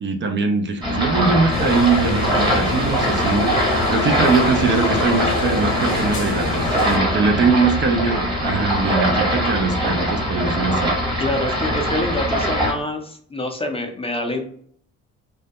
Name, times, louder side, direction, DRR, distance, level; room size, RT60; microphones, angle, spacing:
voice 1, 0.0-3.5 3.9-10.9, right 4 dB, 40° right, 5 dB, 0.5 m, -21 dB
sound 1, 0.8-12.7, equal, 15° right, 0.9 m, -22 dB
sound 2, 1.5-7.0, left 3 dB, 65° left, 0.7 m, -26 dB
Truck / Accelerating revving vroom, 1.7-9.6, right 3 dB, 85° right, 0.7 m, -36 dB
voice 2, 11.2-14.5, left 1 dB, 20° left, 3 dB, 0.4 m, -26 dB
2.3 x 2.1 x 2.7 m, 0.62 s
cardioid pair, 90°, 30 cm